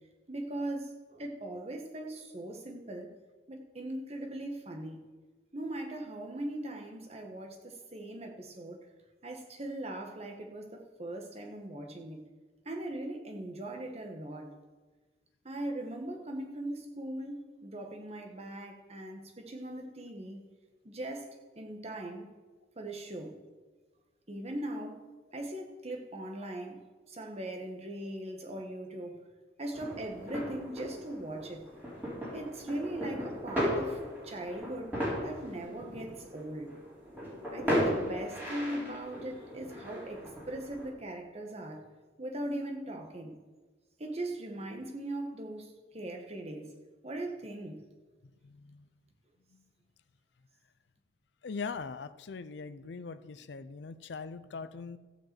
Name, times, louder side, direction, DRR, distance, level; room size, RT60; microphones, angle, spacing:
voice 1, 0.3-3.1 3.5-5.0 5.5-8.8 9.2-12.3 12.6-14.5 15.4-20.4 20.8-22.3 22.8-23.4 24.3-25.0 25.3-26.8 27.1-29.2 29.6-31.6 32.3-36.7 37.5-41.9 42.2-43.3 44.0-46.7 47.0-47.8, right 1 dB, 35° right, 3 dB, 1.3 m, -40 dB
sound 1, 29.7-40.9, equal, 10° right, 4.0 m, -36 dB
voice 2, 48.4-48.9 49.5-49.6 51.4-55.0, left 4 dB, 70° left, 13 dB, 0.5 m, -41 dB
14.5 x 5.1 x 7.5 m, 1.3 s
head